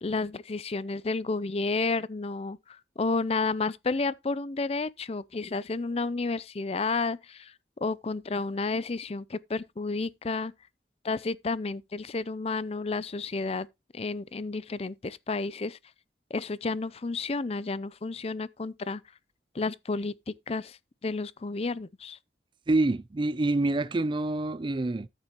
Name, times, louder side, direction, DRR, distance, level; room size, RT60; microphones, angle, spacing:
voice 1, 0.0-7.5 7.8-10.5 11.0-13.7 13.9-15.8 16.3-19.0 19.5-22.2, left 3 dB, 35° left, 0.5 m, -31 dB
voice 2, 22.7-25.1, right 2 dB, 30° right, 0.4 m, -26 dB
13.5 x 6.7 x 3.0 m
head